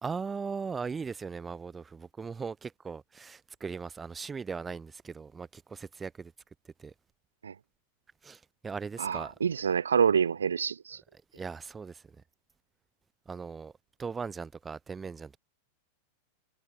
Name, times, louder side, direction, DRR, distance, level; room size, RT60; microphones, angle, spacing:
voice 1, 0.0-6.3 6.8-6.9 8.2-9.3 11.3-12.0 13.3-13.7 14.0-15.4, right 5 dB, 15° right, 0.7 m, -38 dB
voice 2, 9.0-11.0, right 7 dB, 70° right, 0.3 m, -27 dB
figure-of-eight pair, 90°, 0 cm